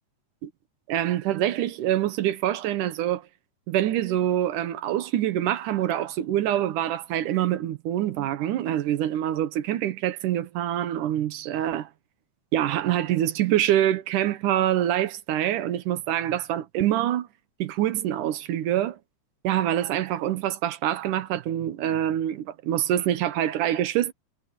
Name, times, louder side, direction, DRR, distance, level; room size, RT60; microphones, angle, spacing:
voice 1, 0.9-3.3 3.7-11.9 12.5-17.3 17.6-19.0 19.4-24.1, right 12 dB, 90° right, 2.6 m, -25 dB
omnidirectional pair, 3.5 m